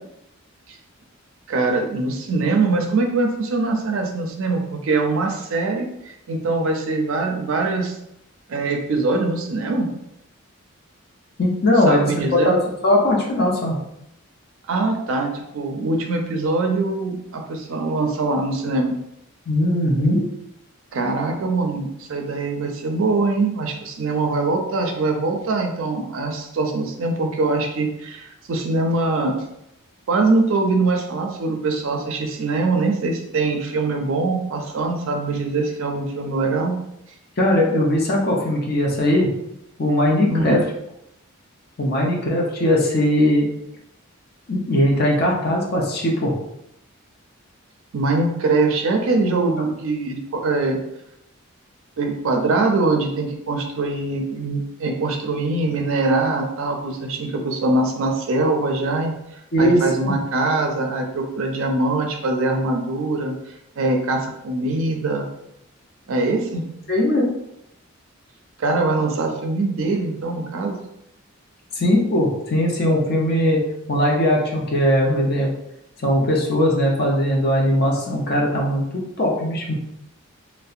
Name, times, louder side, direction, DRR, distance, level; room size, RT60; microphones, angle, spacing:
voice 1, 1.5-8.0 8.5-9.9 11.9-12.6 14.7-19.0 20.9-29.4 30.1-36.7 40.3-40.6 47.9-50.8 52.0-59.1 59.6-63.3 63.8-65.3 66.1-66.6 68.6-70.8, right 3 dB, 65° right, 3 dB, 0.4 m, -22 dB
voice 2, 11.4-12.6 12.8-13.8 19.5-20.2 37.4-39.3 39.8-40.6 41.8-43.5 44.5-46.3 59.5-60.2 66.9-67.3 71.8-73.6 73.9-75.5 76.0-79.7, left 1 dB, 45° left, -1 dB, 0.5 m, -19 dB
2.6 x 2.1 x 2.4 m, 0.81 s
head